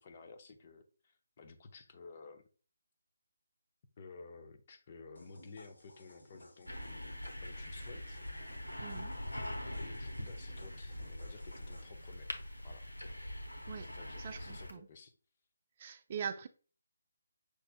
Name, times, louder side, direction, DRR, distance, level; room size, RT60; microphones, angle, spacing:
voice 1, 0.0-2.4 4.0-7.1 7.4-8.2 9.8-12.9 13.8-15.1, left 4 dB, 35° left, 0.6 m, -54 dB
sound 1, 5.1-11.8, left 1 dB, 60° left, 2.4 m, -59 dB
sound 2, 6.7-14.7, left 1 dB, 85° left, 0.9 m, -43 dB
voice 2, 8.8-9.2 13.7-13.9 14.2-14.9 15.8-16.5, right 7 dB, 35° right, 0.4 m, -42 dB
6.1 x 3.3 x 2.4 m
figure-of-eight pair, 150°, 0 cm